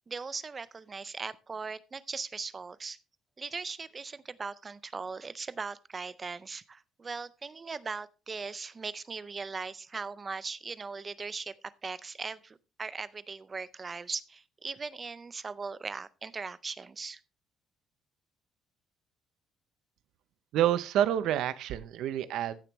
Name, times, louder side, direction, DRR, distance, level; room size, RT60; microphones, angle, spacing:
voice 1, 0.1-3.0 3.4-11.5 11.8-17.2, right 4 dB, 20° right, 0.4 m, -39 dB
voice 2, 20.5-22.6, right 11 dB, 70° right, 0.5 m, -28 dB
15.0 x 6.8 x 3.0 m
cardioid pair, 160°, 0 cm